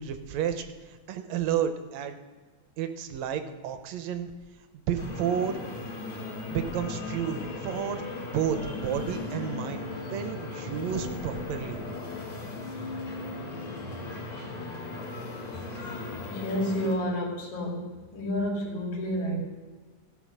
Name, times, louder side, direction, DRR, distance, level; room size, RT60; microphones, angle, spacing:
voice 1, 0.0-2.2 2.8-4.3 4.9-5.6 6.5-8.0 8.3-12.1 14.0-14.4, right 8 dB, 75° right, 9 dB, 1.9 m, -31 dB
sound 1, 5.0-16.9, left 3 dB, 45° left, 2.7 m, -37 dB
voice 2, 16.2-19.4, equal, 80° left, 0 dB, 3.6 m, -30 dB
16.5 x 5.9 x 6.4 m, 1.4 s
omnidirectional pair, 3.3 m